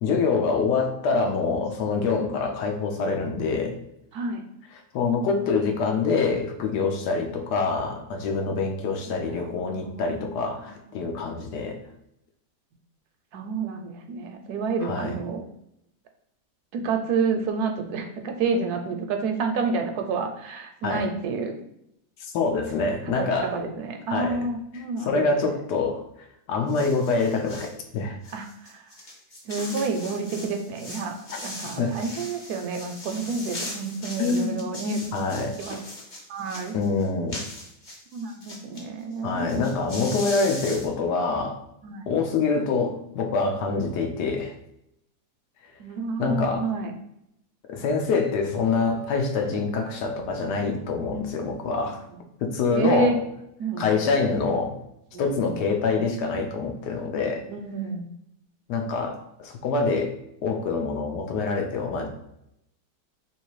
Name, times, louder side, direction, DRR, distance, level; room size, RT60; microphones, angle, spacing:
voice 1, 0.0-3.8 4.9-11.8 14.8-15.2 20.8-21.0 22.2-23.7 24.1-24.4 25.0-26.0 26.5-28.2 31.8-32.0 34.2-34.6 35.1-35.6 36.7-37.4 39.2-41.6 42.1-44.5 46.2-46.6 47.7-52.0 52.4-53.2 53.8-54.8 55.2-57.4 58.7-60.1 60.4-62.1, left 4 dB, 80° left, 3 dB, 1.3 m, -25 dB
voice 2, 4.1-4.4 9.1-10.3 10.6-10.7 13.3-15.5 16.7-21.6 23.0-25.5 28.3-28.9 29.4-31.2 31.4-35.0 35.6-35.8 36.3-36.7 38.1-39.7 41.8-42.1 45.8-46.9 51.1-51.3 51.7-51.8 52.7-53.2 53.6-54.0 55.1-55.7 57.5-58.1, right 4 dB, 75° right, 5 dB, 1.1 m, -29 dB
sound 1, 26.7-27.8 28.2-38.8 39.1-39.2 39.4-40.9, left 1 dB, 35° left, 0.8 m, -39 dB
3.2 x 3.0 x 4.6 m, 0.79 s
omnidirectional pair, 1.8 m